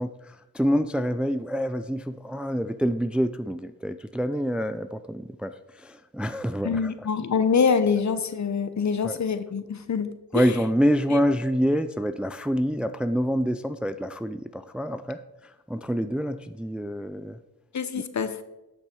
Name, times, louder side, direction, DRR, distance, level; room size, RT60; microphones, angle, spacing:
voice 1, 0.0-6.9 9.0-9.2 10.3-17.4 18.0-18.1, equal, 5° right, 11 dB, 0.4 m, -27 dB
voice 2, 6.6-10.5 17.7-18.4, left 6 dB, 45° left, 11 dB, 1.0 m, -25 dB
10.0 x 6.1 x 6.2 m, 0.99 s
cardioid pair, 65°, 38 cm